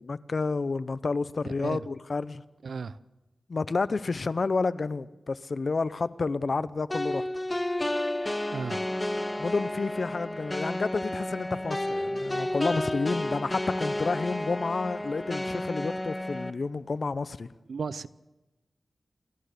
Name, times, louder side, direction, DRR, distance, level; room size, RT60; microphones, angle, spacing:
voice 1, 0.0-2.4 3.5-7.3 9.4-17.5, left 4 dB, 55° left, 0.7 m, -30 dB
voice 2, 1.4-1.9 2.6-3.0 8.5-8.8 17.7-18.1, right 5 dB, 85° right, 0.6 m, -34 dB
sound 1, 6.9-16.5, left 1 dB, 20° left, 1.1 m, -31 dB
28.5 x 14.0 x 6.7 m
wide cardioid pair, 70°, 0 cm